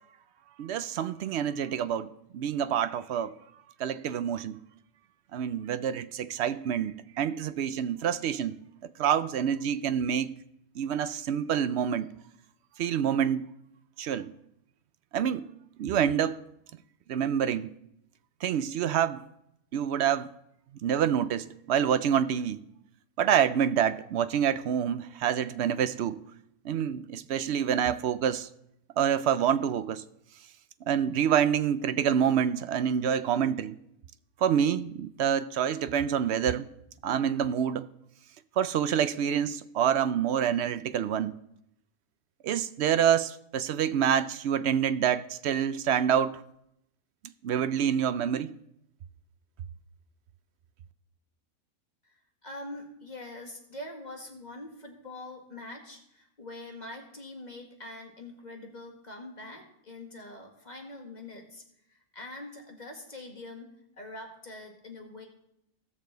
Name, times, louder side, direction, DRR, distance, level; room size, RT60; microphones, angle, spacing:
voice 1, 0.6-3.3 3.8-4.6 5.3-8.6 9.0-10.3 10.8-12.1 12.8-13.4 14.0-14.3 15.1-15.5 15.8-16.4 17.1-17.7 18.4-19.2 19.7-20.3 20.8-22.6 23.2-26.2 26.6-28.5 29.0-30.0 30.9-33.8 34.4-36.7 37.0-37.9 38.6-41.3 42.4-46.4 47.4-48.5, right 8 dB, 65° right, 0.7 m, -27 dB
voice 2, 52.0-61.6 61.9-65.3, left 2 dB, 30° left, 1.7 m, -44 dB
17.0 x 6.6 x 3.9 m
omnidirectional pair, 1.5 m